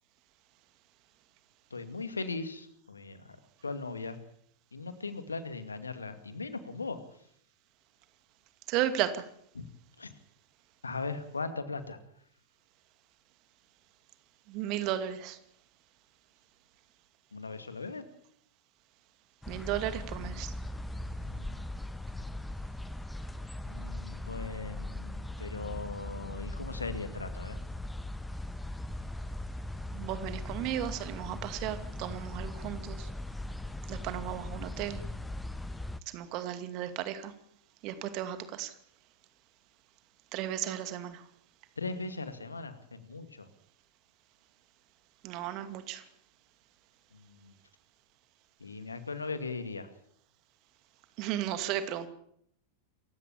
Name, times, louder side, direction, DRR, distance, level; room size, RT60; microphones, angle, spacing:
voice 1, 1.7-3.4 3.6-4.2 4.7-7.0 9.6-9.7 10.0-10.1 10.8-12.0 17.3-18.0 21.2-21.6 23.7-27.6 41.8-43.5 47.1-47.5 48.6-49.9, left 3 dB, 75° left, 10 dB, 2.3 m, -39 dB
voice 2, 8.7-9.2 14.5-15.4 19.5-20.5 29.9-33.1 33.9-35.0 36.1-37.3 37.8-38.7 40.3-41.2 45.2-46.0 51.2-52.1, right 11 dB, 40° right, 10 dB, 2.4 m, -34 dB
sound 1, 19.4-36.0, left 1 dB, 5° left, 1.0 m, -39 dB
27.5 x 16.0 x 7.4 m, 0.68 s
figure-of-eight pair, 90°, 0 cm